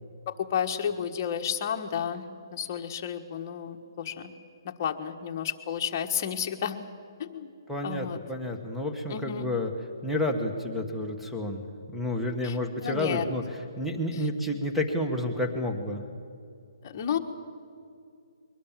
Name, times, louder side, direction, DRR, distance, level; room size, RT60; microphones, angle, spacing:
voice 1, 0.3-4.3 4.6-6.8 7.2-7.5 7.8-8.2 9.1-9.5 12.4-12.6 12.8-13.3 14.1-14.3 16.8-17.2, left 8 dB, 35° left, 4 dB, 1.4 m, -32 dB
voice 2, 7.7-9.7 10.0-16.0, left 1 dB, ahead, -1 dB, 1.3 m, -30 dB
23.0 x 19.5 x 7.5 m, 2.3 s
hypercardioid pair, 160°, 2 cm